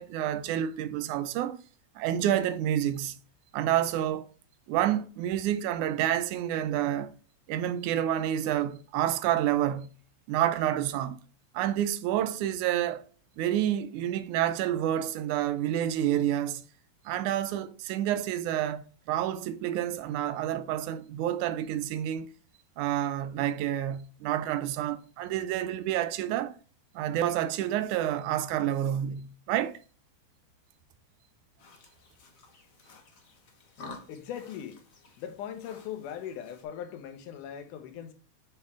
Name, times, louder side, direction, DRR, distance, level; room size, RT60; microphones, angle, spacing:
voice 1, 0.0-1.6 2.0-3.2 3.5-4.3 4.7-7.1 7.5-9.9 10.3-11.2 11.5-13.1 13.4-16.6 17.1-22.3 22.8-26.6 27.0-29.8, right 11 dB, 80° right, 2.1 m, -29 dB
sound 1, 31.6-36.6, left 3 dB, 60° left, 0.8 m, -51 dB
voice 2, 34.1-34.8 35.2-38.1, left 9 dB, 85° left, 2.4 m, -39 dB
7.6 x 4.3 x 3.6 m
omnidirectional pair, 3.5 m